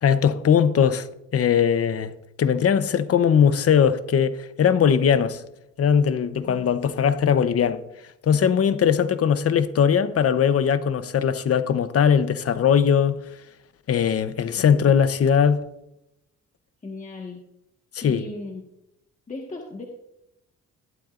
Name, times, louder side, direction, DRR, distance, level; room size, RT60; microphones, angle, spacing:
voice 1, 0.0-1.1 1.3-2.1 2.4-5.4 5.8-7.8 8.2-13.2 13.9-15.6 18.0-18.2, left 7 dB, 50° left, 0.9 m, -20 dB
voice 2, 14.6-14.9 16.8-17.4 18.0-18.6 19.3-19.8, left 3 dB, 25° left, 1.6 m, -37 dB
14.5 x 12.0 x 2.6 m
cardioid pair, 90°, 30 cm